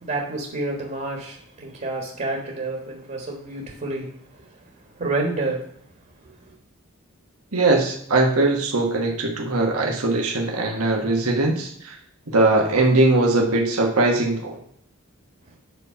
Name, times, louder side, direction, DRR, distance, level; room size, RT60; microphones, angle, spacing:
voice 1, 0.0-4.1 5.0-5.6, right 2 dB, 40° right, -1 dB, 1.4 m, -28 dB
voice 2, 7.5-12.0 12.3-14.6, right 2 dB, 85° right, 0 dB, 1.3 m, -20 dB
8.0 x 4.2 x 5.6 m, 0.63 s
head